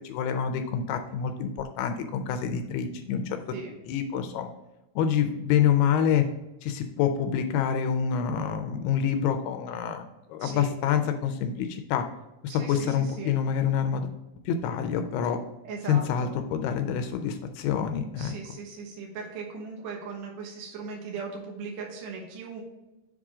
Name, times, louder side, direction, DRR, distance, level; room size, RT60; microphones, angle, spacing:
voice 1, 0.0-3.4 3.9-4.5 5.0-6.3 6.6-12.0 12.4-14.1 14.5-15.4 15.9-18.3, left 8 dB, 85° left, 7 dB, 2.5 m, -27 dB
voice 2, 12.5-13.3 15.6-16.3 18.2-22.6, right 5 dB, 65° right, -1 dB, 2.3 m, -38 dB
7.2 x 3.7 x 4.9 m, 0.98 s
omnidirectional pair, 4.5 m